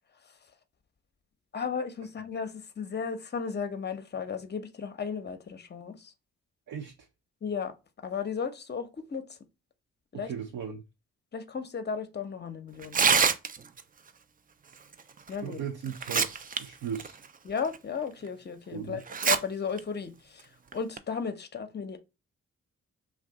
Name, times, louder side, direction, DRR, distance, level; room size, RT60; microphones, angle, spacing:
voice 1, 1.5-6.1 7.4-7.7 8.0-9.4 10.1-10.3 11.3-13.2 15.3-15.6 17.4-22.0, left 6 dB, 30° left, 0.6 m, -35 dB
voice 2, 6.7-7.1 10.2-10.8 15.4-17.2 18.7-19.0, right 8 dB, 70° right, 0.6 m, -37 dB
Tearing, 12.8-13.8 15.3-15.4 15.9-16.6 16.9-17.1 17.7-17.8 19.1-19.4 19.8-19.9 20.7-21.0, right 6 dB, 25° right, 0.4 m, -24 dB
2.6 x 2.3 x 3.5 m
supercardioid pair, 40°, 34 cm